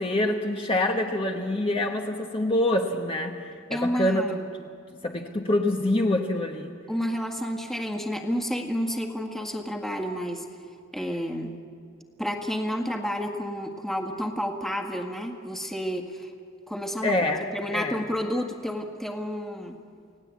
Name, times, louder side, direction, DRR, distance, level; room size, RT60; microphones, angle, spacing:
voice 1, 0.0-4.3 5.0-6.7 17.0-17.4 17.7-18.0, left 1 dB, 25° left, 2 dB, 1.2 m, -26 dB
voice 2, 3.7-4.3 6.9-10.5 10.9-11.6 12.2-16.3 16.7-19.8, equal, ahead, 3 dB, 1.8 m, -30 dB
29.5 x 18.0 x 8.4 m, 2.2 s
head